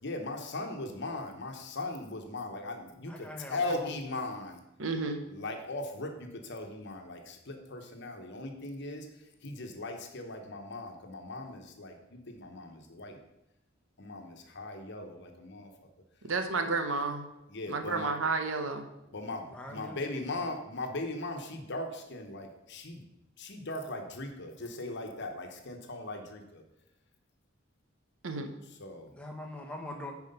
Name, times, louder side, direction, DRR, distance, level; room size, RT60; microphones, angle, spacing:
voice 1, 0.0-4.6 5.2-9.1 9.4-13.2 14.0-15.7 17.5-18.2 19.1-23.1 23.4-26.6 28.6-29.1, left 2 dB, 60° left, 4 dB, 1.1 m, -39 dB
voice 2, 3.1-4.0 19.5-20.2 29.1-30.1, left 1 dB, 5° left, 1 dB, 1.2 m, -43 dB
voice 3, 4.8-5.2 16.2-17.2 17.7-18.8 28.2-28.5, right 4 dB, 75° right, 6 dB, 0.9 m, -31 dB
9.7 x 4.8 x 5.4 m, 0.91 s
head